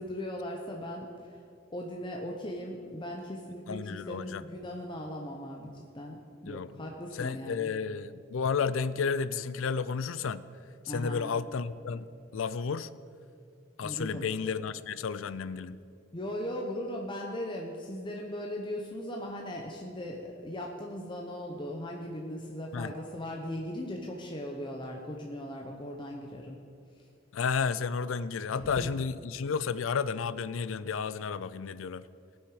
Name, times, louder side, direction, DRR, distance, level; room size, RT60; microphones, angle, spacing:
voice 1, 0.0-1.4 1.7-7.7 10.9-11.2 13.8-14.2 16.1-26.6 27.0-27.1 28.6-28.9, left 1 dB, 25° left, 0 dB, 0.8 m, -38 dB
voice 2, 3.7-4.4 6.5-6.7 7.1-10.4 10.9-12.1 12.3-12.9 13.8-15.8 22.7-22.9 27.3-32.0, left 5 dB, 80° left, 16 dB, 0.4 m, -32 dB
18.5 x 6.3 x 4.8 m, 2.3 s
head